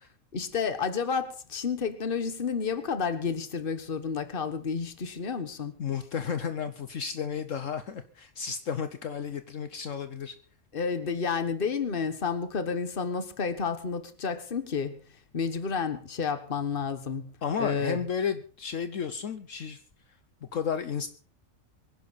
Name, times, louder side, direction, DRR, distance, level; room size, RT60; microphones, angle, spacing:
voice 1, 0.3-5.7 10.7-15.0 15.3-17.3 17.6-18.0, left 5 dB, 40° left, 1.4 m, -30 dB
voice 2, 5.8-10.3 17.4-19.8 20.5-21.1, left 7 dB, 65° left, 1.3 m, -32 dB
24.0 x 11.0 x 4.1 m
omnidirectional pair, 1.5 m